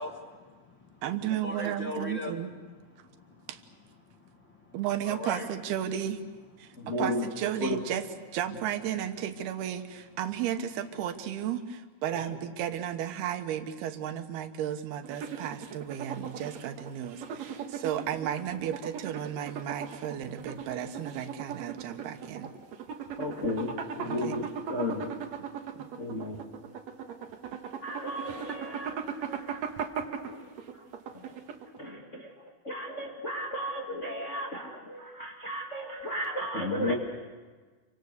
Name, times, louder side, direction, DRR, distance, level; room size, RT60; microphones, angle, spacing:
voice 1, 0.0-2.3 3.0-3.5 4.0-4.8 5.0-5.5 6.6-6.9, left 2 dB, 50° left, 2 dB, 1.4 m, -41 dB
voice 2, 1.0-2.5 3.5-3.6 4.7-6.2 6.6-22.5 24.0-24.5 25.8-25.9, right 10 dB, 85° right, 8 dB, 3.2 m, -34 dB
voice 3, 6.8-7.2 7.6-7.8 23.2-25.1 26.0-26.4 27.8-29.6 30.2-30.4 31.8-32.3 32.6-36.9, left 1 dB, 25° left, -1 dB, 1.6 m, -34 dB
sound 1, 15.0-31.9, right 7 dB, 60° right, 2.2 m, -38 dB
29.5 x 24.5 x 6.7 m, 1.4 s
omnidirectional pair, 4.4 m